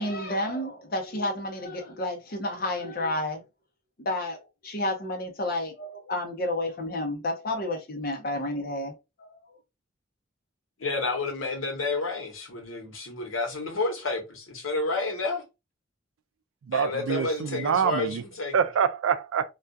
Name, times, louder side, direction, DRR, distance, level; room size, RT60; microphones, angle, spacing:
voice 1, 0.0-3.4 4.0-9.0 9.3-9.4, left 1 dB, 45° left, 0.6 m, -30 dB
voice 2, 10.8-15.4 16.7-18.5, left 3 dB, 80° left, 0.9 m, -30 dB
voice 3, 16.7-18.2 18.5-19.5, right 7 dB, 80° right, 0.3 m, -25 dB
2.3 x 2.2 x 2.5 m
head